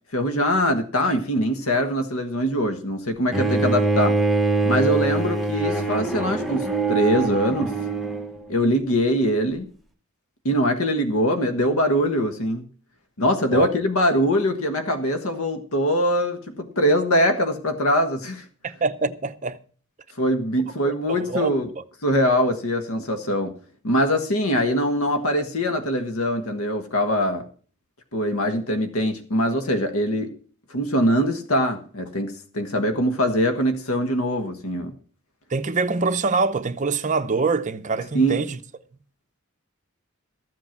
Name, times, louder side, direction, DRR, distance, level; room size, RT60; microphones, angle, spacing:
voice 1, 0.1-4.2 4.6-7.7 8.5-9.7 10.4-12.6 13.2-18.4 20.2-21.7 22.0-23.5 23.8-27.4 28.1-30.3 30.7-34.9 38.1-38.4, equal, 90° left, 1.5 m, -22 dB
Bowed string instrument, 3.3-8.4, right 3 dB, ahead, 1.0 m, -23 dB
voice 2, 18.6-19.6 21.1-21.5 35.5-38.6, right 4 dB, 35° right, 0.7 m, -24 dB
14.0 x 7.9 x 5.9 m
head